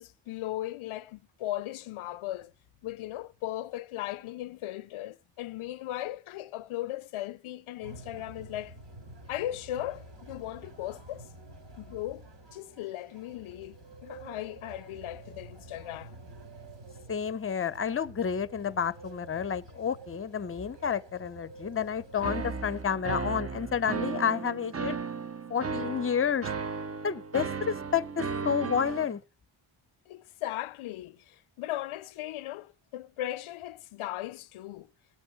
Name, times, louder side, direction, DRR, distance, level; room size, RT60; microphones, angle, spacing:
voice 1, 0.0-2.5 2.8-8.7 9.3-11.3 11.8-12.3 12.5-13.8 14.0-16.2 30.1-34.9, left 14 dB, 85° left, 0.5 m, -37 dB
sound 1, 7.8-22.8, right 2 dB, 60° right, 4.8 m, -49 dB
voice 2, 17.1-25.0 25.5-26.5 27.0-29.2, left 7 dB, 30° left, 0.7 m, -30 dB
sound 2, 22.2-29.1, right 5 dB, 30° right, 0.9 m, -35 dB
18.5 x 8.6 x 4.5 m
cardioid pair, 70°, 47 cm